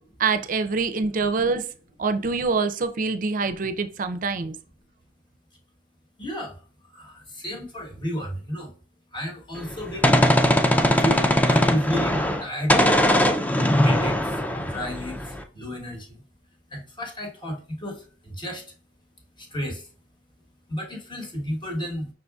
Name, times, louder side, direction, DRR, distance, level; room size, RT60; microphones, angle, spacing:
voice 1, 0.2-1.6 2.0-4.6, right 4 dB, 45° right, 10 dB, 0.5 m, -25 dB
voice 2, 6.2-6.6 6.9-8.7 9.1-10.2 11.0-13.2 13.8-16.2 16.7-18.6 19.4-19.9 20.7-22.1, equal, 25° left, 0 dB, 1.2 m, -32 dB
Gunshot gunfire, 9.6-12.4 12.7-15.4, equal, 10° left, 0.4 m, -20 dB
5.5 x 3.9 x 2.3 m, 0.40 s
head